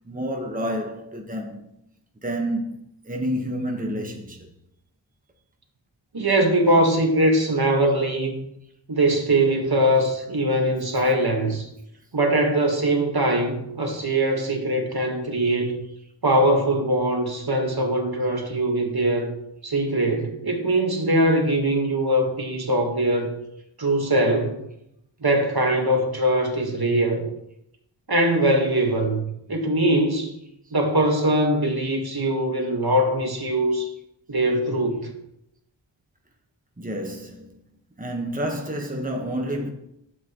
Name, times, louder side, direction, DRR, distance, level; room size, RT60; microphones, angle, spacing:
voice 1, 0.0-1.7 2.2-4.5 36.8-37.6 38.0-39.7, equal, 20° right, 1.3 m, -29 dB
voice 2, 6.1-8.4 8.9-11.7 12.1-15.7 16.2-19.3 19.6-23.3 23.8-24.6 25.2-27.3 28.1-30.3 30.7-33.9 34.3-35.1, right 1 dB, 55° right, 1.7 m, -22 dB
11.5 x 7.7 x 3.1 m
wide cardioid pair, 55°, 46 cm